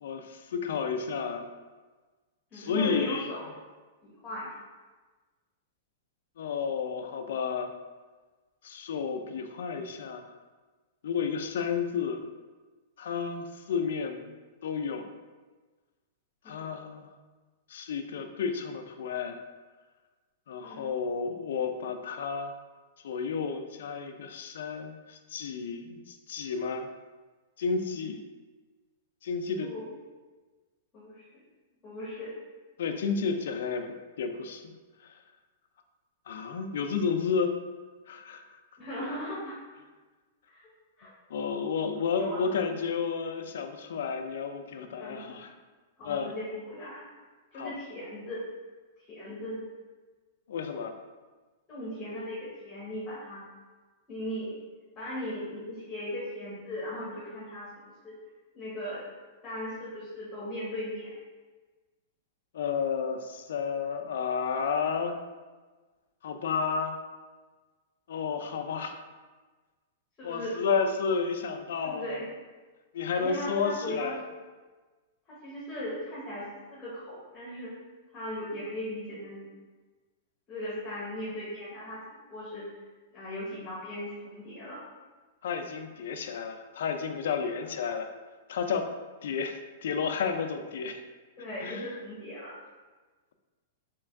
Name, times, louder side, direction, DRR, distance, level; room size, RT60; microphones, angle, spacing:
voice 1, 0.0-1.5 2.5-3.3 6.4-7.7 8.6-10.3 11.0-12.2 13.0-14.3 14.6-15.1 16.5-17.1 17.7-19.4 20.5-22.5 23.0-26.9 27.6-28.3 29.2-29.7 32.8-33.9 34.2-34.6 35.0-35.1 36.3-37.5 38.1-38.6 41.3-45.5 46.0-46.3 47.5-47.7 50.5-50.9 62.5-65.2 66.2-67.0 68.1-69.0 70.2-72.2 72.9-74.2 85.4-88.1 88.5-88.9 89.2-91.0 91.6-91.9, left 5 dB, 75° left, 6 dB, 0.4 m, -31 dB
voice 2, 2.5-3.5 4.0-4.5 16.4-16.6 20.6-20.9 29.6-29.9 30.9-31.4 31.8-32.3 38.8-39.6 40.5-40.6 41.0-41.1 42.1-42.5 45.0-45.4 46.0-47.1 47.5-48.4 49.0-49.6 51.7-53.4 54.1-54.6 55.0-57.7 58.0-58.1 58.5-59.0 59.4-61.1 70.2-70.6 71.8-72.3 73.1-74.4 75.3-77.7 78.1-79.5 80.5-82.7 83.1-84.8 87.5-87.6 91.4-92.5, left 1 dB, 20° left, -8 dB, 1.1 m, -38 dB
3.3 x 2.9 x 3.6 m, 1.3 s
supercardioid pair, 155°, 0 cm